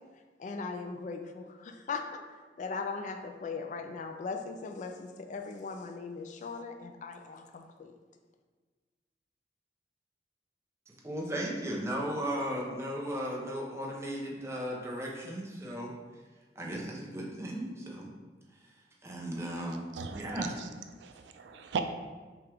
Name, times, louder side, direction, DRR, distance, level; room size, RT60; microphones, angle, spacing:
voice 1, 0.4-7.9, left 4 dB, 45° left, 6 dB, 0.3 m, -39 dB
voice 2, 11.0-15.9 16.6-18.1 19.0-19.8 20.1-20.5, equal, 15° right, -3 dB, 0.7 m, -36 dB
voice 3, 19.9-20.5 21.0-21.8, right 6 dB, 85° right, 7 dB, 0.4 m, -37 dB
5.7 x 2.4 x 3.4 m, 1.4 s
head